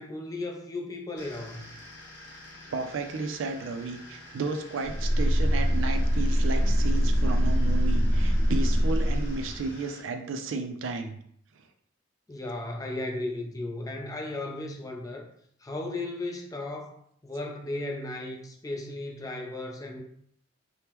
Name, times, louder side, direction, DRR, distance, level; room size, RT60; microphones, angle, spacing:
voice 1, 0.0-1.7 12.3-15.2 15.6-17.0 17.2-20.0, left 2 dB, 15° left, 1 dB, 0.4 m, -35 dB
sound 1, 1.2-10.0, left 1 dB, 60° left, 0.8 m, -48 dB
voice 2, 2.7-11.2, right 3 dB, 80° right, 6 dB, 0.4 m, -33 dB
sound 2, 4.8-9.7, equal, ahead, 1.4 m, -24 dB
3.4 x 2.1 x 2.9 m, 0.67 s
head